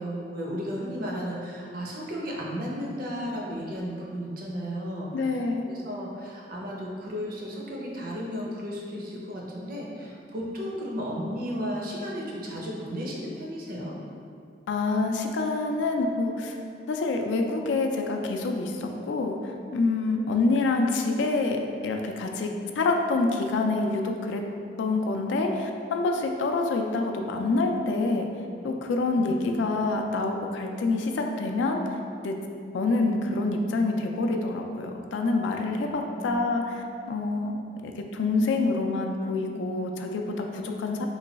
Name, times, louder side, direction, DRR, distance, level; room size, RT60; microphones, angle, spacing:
voice 1, 0.0-5.4 5.7-13.9 29.2-29.3 36.2-36.5, equal, 50° right, -3 dB, 0.6 m, -34 dB
voice 2, 5.1-5.7 14.7-16.6 16.9-24.4 24.8-28.3 28.6-31.8 32.2-32.3 32.7-41.1, left 3 dB, 75° left, 3 dB, 0.3 m, -27 dB
3.1 x 2.2 x 3.9 m, 2.4 s
head